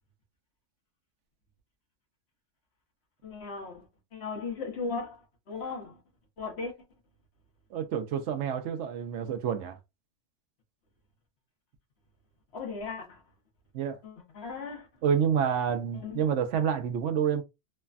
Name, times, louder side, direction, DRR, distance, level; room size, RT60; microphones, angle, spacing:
voice 1, 3.2-6.0 6.4-6.7 12.5-13.2 14.0-15.0 15.9-16.3, left 4 dB, 60° left, 1.2 m, -37 dB
voice 2, 7.7-9.8 13.7-14.0 15.0-17.4, right 8 dB, 75° right, 0.9 m, -28 dB
3.2 x 2.1 x 2.4 m
omnidirectional pair, 1.3 m